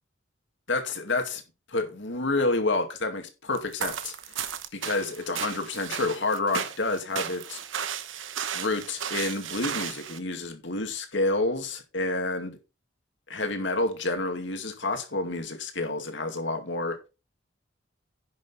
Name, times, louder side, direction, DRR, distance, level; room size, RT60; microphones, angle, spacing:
voice 1, 0.7-1.4 1.7-4.1 4.7-7.6 8.5-12.6 13.3-17.0, left 2 dB, 70° left, 2.2 m, -29 dB
sound 1, 3.6-10.2, right 8 dB, 80° right, 1.1 m, -34 dB
10.5 x 6.2 x 4.3 m
head